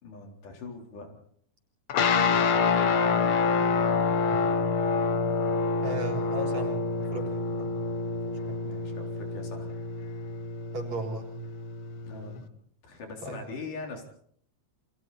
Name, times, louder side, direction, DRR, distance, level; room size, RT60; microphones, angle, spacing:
voice 1, 0.0-1.2 2.1-3.4 8.6-9.8 12.0-12.5 12.8-14.1, left 3 dB, 85° left, 2 dB, 5.5 m, -42 dB
sound 1, 1.9-12.4, left 4 dB, 55° left, 1.6 m, -27 dB
voice 2, 5.8-7.7 8.3-8.6 10.7-11.3 13.2-13.4, right 1 dB, 60° right, 2 dB, 5.2 m, -36 dB
29.0 x 26.0 x 4.2 m, 0.64 s
omnidirectional pair, 3.5 m